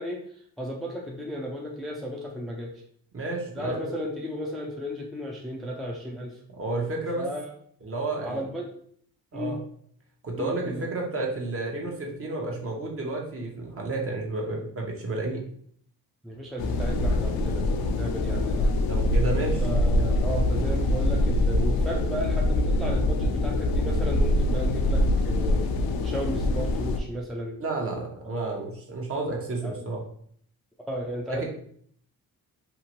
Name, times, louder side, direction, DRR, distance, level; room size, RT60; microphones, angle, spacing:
voice 1, 0.0-2.8 3.5-6.4 7.1-7.5 8.2-8.7 9.3-9.6 10.4-10.9 16.2-17.6 17.9-18.7 19.6-25.6 26.0-27.6 29.3-29.9 30.9-31.4, equal, ahead, -1 dB, 0.4 m, -34 dB
voice 2, 3.1-4.0 6.6-7.3 7.8-8.4 9.3-9.6 10.2-15.4 18.9-19.6 27.6-30.0 31.3-31.4, right 2 dB, 40° right, -1 dB, 0.9 m, -31 dB
sound 1, 16.6-27.0, left 1 dB, 75° left, 0.5 m, -24 dB
2.8 x 2.5 x 2.9 m, 0.63 s
cardioid pair, 85°, 36 cm